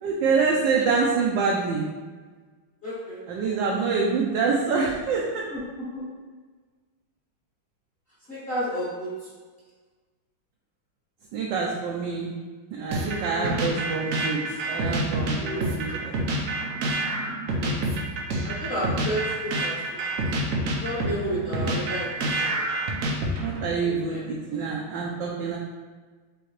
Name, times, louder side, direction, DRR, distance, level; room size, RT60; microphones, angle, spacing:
voice 1, 0.0-1.9 3.3-5.4 11.3-12.3 12.7-16.2 23.4-25.6, right 4 dB, 75° right, -2 dB, 1.1 m, -26 dB
voice 2, 2.8-3.6 5.5-6.1 8.3-9.3 13.2-13.8 15.4-16.0 17.6-17.9 18.4-19.8 20.8-22.6 24.1-24.2, equal, 35° left, -9 dB, 1.1 m, -32 dB
sound 1, 12.9-23.7, right 2 dB, 90° right, 0.7 m, -27 dB
5.7 x 3.0 x 3.0 m, 1.4 s
omnidirectional pair, 2.3 m